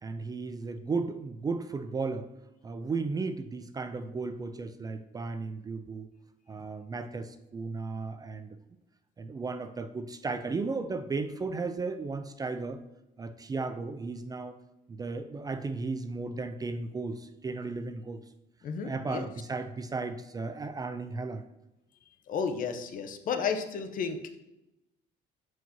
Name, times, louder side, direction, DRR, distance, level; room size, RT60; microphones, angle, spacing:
voice 1, 0.0-2.3 2.6-6.1 6.5-8.6 9.2-12.8 13.2-14.6 14.9-18.2 18.8-21.5, right 4 dB, 20° right, 10 dB, 0.4 m, -35 dB
voice 2, 18.6-19.3 22.3-24.4, left 6 dB, 55° left, 7 dB, 0.7 m, -32 dB
7.7 x 4.6 x 2.8 m, 0.94 s
cardioid pair, 110°, 17 cm